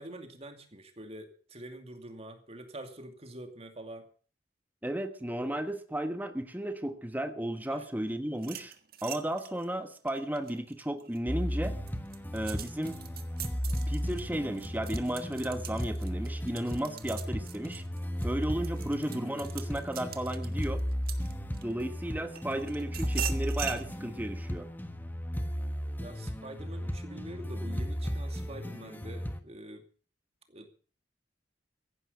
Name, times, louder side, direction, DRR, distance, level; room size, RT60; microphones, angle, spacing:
voice 1, 0.0-4.1 7.7-7.9 26.0-29.9 30.5-30.7, right 1 dB, 35° right, 7 dB, 2.5 m, -45 dB
voice 2, 4.8-8.7 9.0-11.7 12.3-13.0 13.9-17.8 18.2-20.8 21.6-24.7, right 1 dB, 10° right, 8 dB, 1.3 m, -34 dB
sound 1, 8.3-11.2 11.7-21.8 22.4-23.8, right 11 dB, 60° right, 1.6 m, -42 dB
sound 2, 11.3-29.4, equal, 10° left, 1.4 m, -35 dB
15.5 x 11.0 x 6.7 m, 0.41 s
head